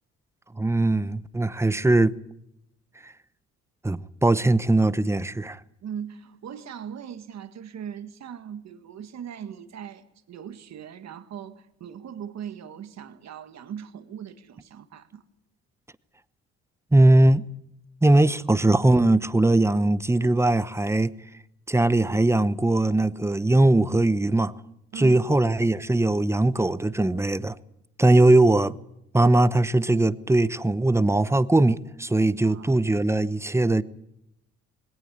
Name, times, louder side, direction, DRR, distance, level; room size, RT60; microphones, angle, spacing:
voice 1, 0.6-2.1 3.0-3.1 3.8-5.6 16.9-17.4 18.0-21.1 21.7-24.5 25.0-27.6 28.0-28.8 29.1-33.8, right 2 dB, 10° right, 0.9 m, -20 dB
voice 2, 5.8-15.2 24.9-25.5 32.4-32.7, right 8 dB, 60° right, 1.8 m, -39 dB
20.0 x 18.0 x 9.8 m
cardioid pair, 90°, 30 cm